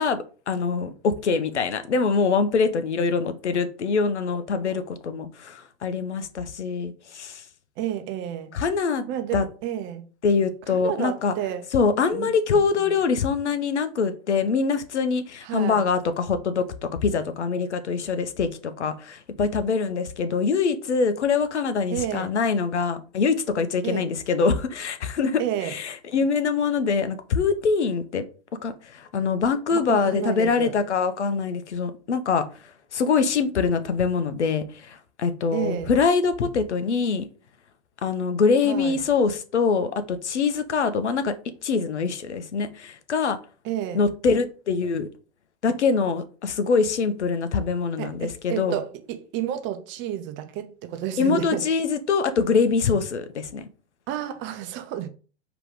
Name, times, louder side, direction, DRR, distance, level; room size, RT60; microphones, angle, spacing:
voice 1, 0.0-7.4 8.5-9.0 9.3-9.4 10.2-11.3 11.7-28.2 28.6-32.5 32.9-37.3 38.0-41.3 41.6-43.4 43.9-45.1 45.6-48.8 51.2-53.7, left 5 dB, 80° left, 0.8 m, -24 dB
voice 2, 7.8-8.6 9.1-10.0 10.7-11.6 12.1-12.9 15.4-15.8 21.9-22.3 23.8-24.1 25.4-25.7 29.7-30.7 35.5-35.9 38.6-39.0 43.6-44.0 48.0-51.6 54.1-55.1, right 11 dB, 35° right, 0.7 m, -31 dB
4.8 x 3.0 x 3.6 m
hypercardioid pair, 100°, 34 cm